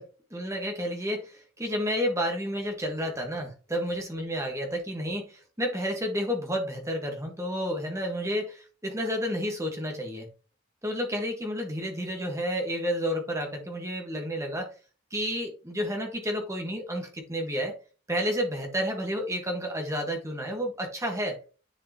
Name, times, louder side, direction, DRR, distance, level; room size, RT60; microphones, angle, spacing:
voice 1, 0.0-10.3 10.8-14.7 15.1-17.7 18.1-21.4, equal, 15° right, 2 dB, 1.6 m, -31 dB
10.0 x 5.0 x 3.0 m, 0.35 s
head